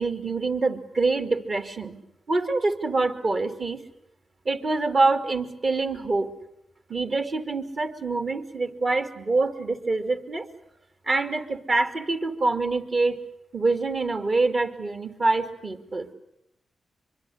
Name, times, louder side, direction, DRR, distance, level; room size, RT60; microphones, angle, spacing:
voice 1, 0.0-2.0 2.3-3.8 4.4-6.3 6.9-10.5 11.1-13.2 13.5-16.1, right 3 dB, 50° right, 8 dB, 2.7 m, -25 dB
24.5 x 23.5 x 8.0 m, 0.80 s
cardioid pair, 60°, 0 cm